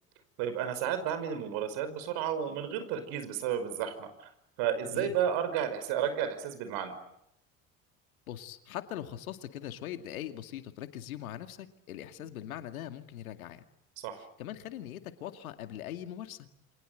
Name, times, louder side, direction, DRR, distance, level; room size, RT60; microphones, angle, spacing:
voice 1, 0.4-4.3 4.6-6.9 14.0-14.2, right 9 dB, 65° right, 11 dB, 5.6 m, -32 dB
voice 2, 8.3-13.6 14.4-16.5, left 11 dB, 85° left, 7 dB, 2.3 m, -41 dB
29.0 x 25.0 x 8.0 m, 0.77 s
hypercardioid pair, 75°, 41 cm